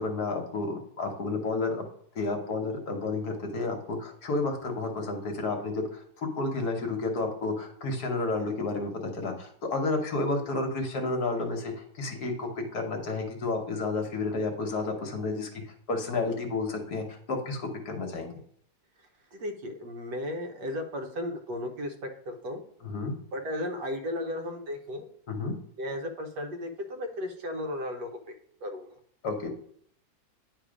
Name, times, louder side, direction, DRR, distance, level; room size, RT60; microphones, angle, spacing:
voice 1, 0.0-1.9 2.1-15.5 15.9-18.3 22.8-23.1 25.3-25.6 29.2-29.5, left 3 dB, 60° left, 3 dB, 1.4 m, -31 dB
voice 2, 19.3-22.6 23.3-25.1 25.8-28.1 28.6-28.9, left 1 dB, 70° right, 4 dB, 1.4 m, -35 dB
9.6 x 3.4 x 5.0 m, 0.65 s
omnidirectional pair, 2.0 m